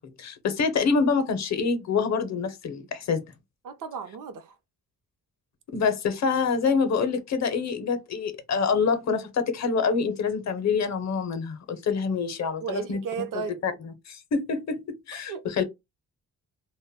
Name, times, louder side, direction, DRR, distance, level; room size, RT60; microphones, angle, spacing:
voice 1, 0.0-3.2 5.7-13.0 13.3-15.6, left 5 dB, 55° left, 0.6 m, -26 dB
voice 2, 3.6-4.6 12.6-13.6 15.1-15.4, right 6 dB, 70° right, 0.6 m, -34 dB
2.1 x 2.0 x 3.4 m
cardioid pair, 105°, 33 cm